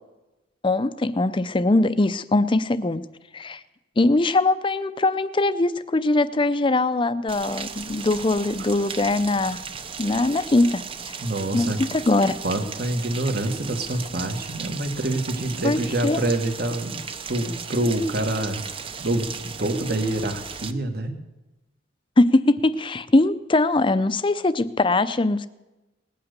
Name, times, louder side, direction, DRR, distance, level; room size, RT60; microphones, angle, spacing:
voice 1, 0.6-3.0 3.3-3.6 4.0-9.6 10.0-11.2 11.5-12.3 15.6-16.2 22.2-25.5, left 2 dB, 25° left, 14 dB, 0.5 m, -21 dB
Rain, 7.3-20.7, right 6 dB, 30° right, 0.7 m, -36 dB
voice 2, 11.2-11.8 12.4-18.6 19.0-21.1, right 1 dB, 55° right, 6 dB, 1.6 m, -26 dB
19.0 x 8.8 x 6.7 m, 1.1 s
head